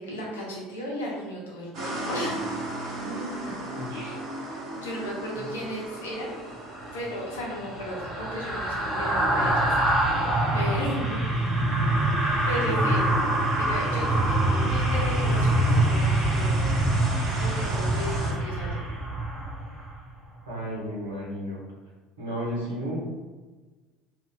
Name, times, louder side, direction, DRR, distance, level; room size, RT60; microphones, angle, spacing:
voice 1, 0.0-2.6 4.5-6.5 6.9-10.1 10.5-11.3 12.5-13.1 13.6-16.7 17.4-18.8, equal, 75° left, -4 dB, 0.8 m, -35 dB
sound 1, 1.7-18.3, right 1 dB, 45° right, 1.1 m, -37 dB
voice 2, 3.0-4.2 20.5-21.6 22.2-23.0, equal, 75° right, -5 dB, 0.9 m, -34 dB
sound 2, 6.7-20.0 20.3-20.5, right 1 dB, 25° right, 1.0 m, -25 dB
2.6 x 2.5 x 3.8 m, 1.3 s
figure-of-eight pair, 65°, 0 cm